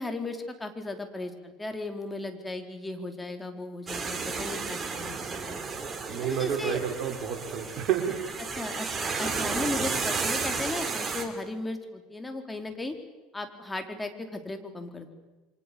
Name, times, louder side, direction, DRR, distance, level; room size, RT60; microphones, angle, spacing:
voice 1, 0.0-5.6 6.2-6.8 8.4-13.0 13.3-15.1, left 2 dB, 15° left, 5 dB, 4.2 m, -36 dB
sound 1, 3.9-11.3, right 4 dB, 30° right, 4.1 m, -32 dB
voice 2, 6.1-8.2, right 9 dB, 55° right, 3 dB, 5.0 m, -30 dB
29.0 x 25.0 x 7.1 m, 1.1 s
hypercardioid pair, 75°, 0 cm